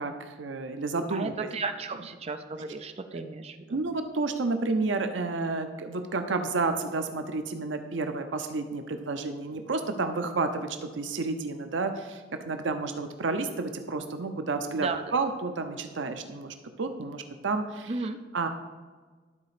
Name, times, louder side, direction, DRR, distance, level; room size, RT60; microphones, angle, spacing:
voice 1, 0.0-1.5 3.1-3.2 3.7-18.0 18.3-18.5, right 3 dB, 85° right, 7 dB, 0.6 m, -31 dB
voice 2, 1.1-3.8 14.8-15.0 17.9-18.2, right 3 dB, 35° right, 7 dB, 0.5 m, -34 dB
12.0 x 4.2 x 4.9 m, 1.4 s
head